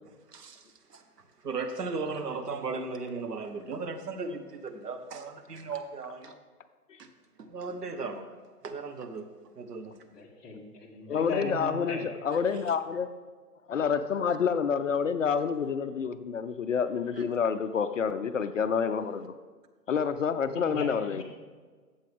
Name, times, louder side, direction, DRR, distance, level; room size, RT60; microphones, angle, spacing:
voice 1, 0.3-1.0 1.4-6.3 7.0-7.1 7.4-8.2 8.6-9.3 9.5-9.9 17.2-17.3, right 4 dB, 80° right, 7 dB, 1.4 m, -36 dB
voice 2, 10.1-12.1 20.5-21.2, left 2 dB, 15° left, -5 dB, 1.4 m, -37 dB
voice 3, 11.1-13.1 13.7-19.4 19.9-21.2, left 6 dB, 55° left, 10 dB, 0.5 m, -28 dB
12.5 x 7.7 x 3.6 m, 1.5 s
hypercardioid pair, 155°, 46 cm